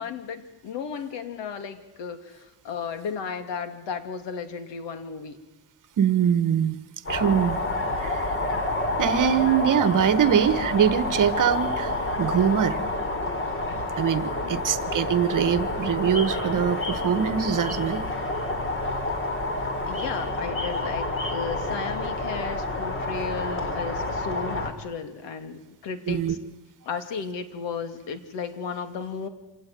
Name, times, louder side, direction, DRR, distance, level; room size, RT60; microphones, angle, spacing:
voice 1, 0.0-5.4 14.4-14.6 19.9-26.4 26.8-29.3, left 6 dB, 75° left, 9 dB, 2.8 m, -34 dB
voice 2, 6.0-6.8 7.1-7.6 8.0-8.3 9.0-12.8 14.0-18.0 26.1-26.3, right 8 dB, 45° right, 14 dB, 1.4 m, -23 dB
sound 1, 7.1-24.7, left 2 dB, 30° left, 4.0 m, -29 dB
26.0 x 18.0 x 9.3 m, 1.0 s
cardioid pair, 125°, 44 cm